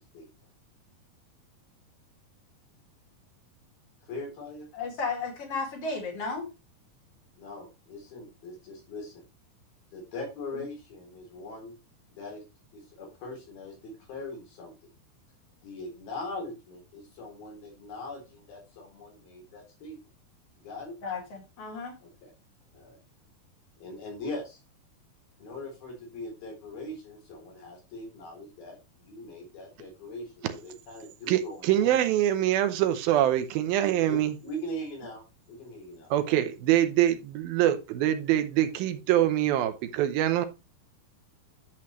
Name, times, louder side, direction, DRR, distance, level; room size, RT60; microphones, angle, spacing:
voice 1, 4.1-4.6 7.4-9.2 9.9-11.7 12.1-12.4 12.7-14.7 15.6-20.0 20.6-20.9 22.0-22.3 22.7-23.0 23.8-24.6 25.4-32.0 34.1-35.2 35.5-36.1, left 2 dB, 75° left, 5.6 m, -41 dB
voice 2, 4.8-6.5 10.5-10.6 21.0-21.9, left 4 dB, 45° left, 2.9 m, -34 dB
voice 3, 31.3-34.4 36.1-40.5, right 12 dB, 80° right, 2.7 m, -24 dB
10.5 x 7.3 x 3.1 m
omnidirectional pair, 4.3 m